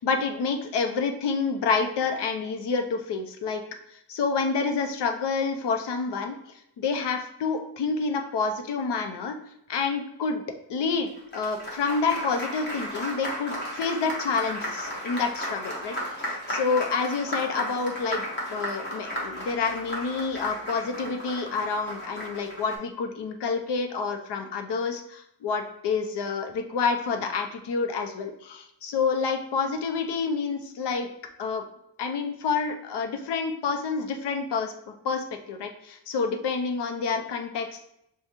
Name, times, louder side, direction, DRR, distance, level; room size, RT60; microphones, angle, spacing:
voice 1, 0.0-3.6 3.9-9.4 9.7-10.4 10.7-31.1 31.4-31.6 32.0-37.8, left 5 dB, 75° left, 5 dB, 0.7 m, -28 dB
Applause, 11.1-22.8, equal, 25° left, 1.4 m, -34 dB
6.5 x 2.3 x 2.9 m, 0.78 s
cardioid pair, 110°, 41 cm